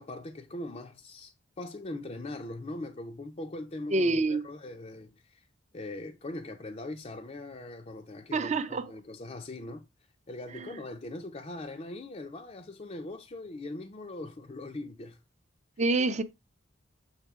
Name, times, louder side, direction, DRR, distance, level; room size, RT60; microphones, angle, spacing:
voice 1, 0.0-5.4 5.7-9.8 10.3-15.2, left 2 dB, 30° left, 0.5 m, -41 dB
voice 2, 3.9-4.4 8.3-8.9 10.5-10.7 15.8-16.2, right 2 dB, 35° right, 0.6 m, -27 dB
7.2 x 3.8 x 3.5 m
head